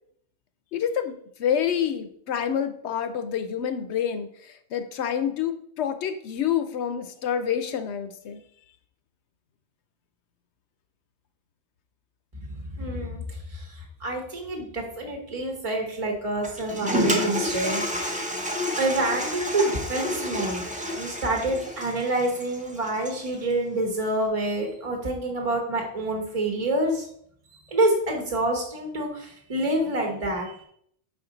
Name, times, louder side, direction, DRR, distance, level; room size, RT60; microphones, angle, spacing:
voice 1, 0.7-1.1 1.4-4.3 4.7-8.4, left 8 dB, 70° left, 9 dB, 0.9 m, -27 dB
voice 2, 12.8-13.2 13.5-13.7 14.0-17.8 18.8-20.7 20.9-27.0 27.7-30.7, right 1 dB, 30° right, 2 dB, 1.0 m, -27 dB
Toilet flush, 16.4-23.4, equal, 10° right, 0.7 m, -30 dB
5.9 x 4.4 x 3.9 m, 0.66 s
omnidirectional pair, 1.2 m